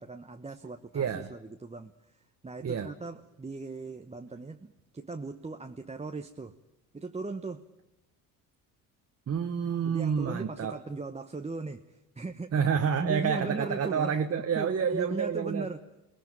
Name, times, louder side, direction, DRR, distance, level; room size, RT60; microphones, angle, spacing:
voice 1, 0.0-6.5 6.9-7.6 9.8-12.7 13.0-14.2 14.5-15.8, right 3 dB, 15° right, 6 dB, 1.0 m, -38 dB
voice 2, 0.9-1.3 2.6-2.9 9.3-10.8 12.5-15.7, right 7 dB, 35° right, 6 dB, 1.3 m, -28 dB
23.0 x 18.5 x 9.1 m, 0.96 s
hypercardioid pair, 55°, 44 cm